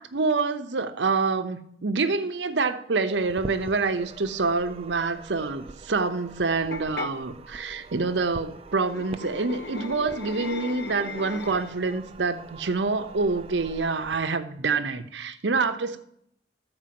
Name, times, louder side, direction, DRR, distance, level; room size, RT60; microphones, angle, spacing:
voice 1, 0.0-16.0, right 4 dB, 80° right, 0.8 m, -27 dB
sound 1, 3.1-14.2, right 3 dB, 35° right, 0.5 m, -44 dB
sound 2, 6.7-7.1 8.8-11.9, left 4 dB, 65° left, 0.8 m, -37 dB
14.0 x 4.7 x 7.6 m
head